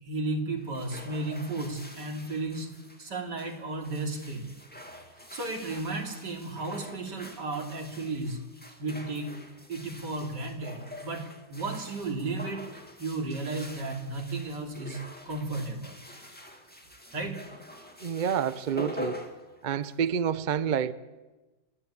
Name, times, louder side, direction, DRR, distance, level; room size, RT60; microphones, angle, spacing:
voice 1, 0.0-2.7 3.0-4.5 5.3-8.4 8.8-9.3 9.7-12.6 13.0-15.0 15.3-16.3 17.1-17.4, right 2 dB, 80° right, 2 dB, 3.3 m, -34 dB
sound 1, 0.6-20.2, left 1 dB, 5° left, 2.0 m, -46 dB
voice 2, 18.0-19.2 19.6-20.9, right 8 dB, 55° right, 14 dB, 0.5 m, -28 dB
28.0 x 11.5 x 8.6 m, 1.2 s
omnidirectional pair, 1.8 m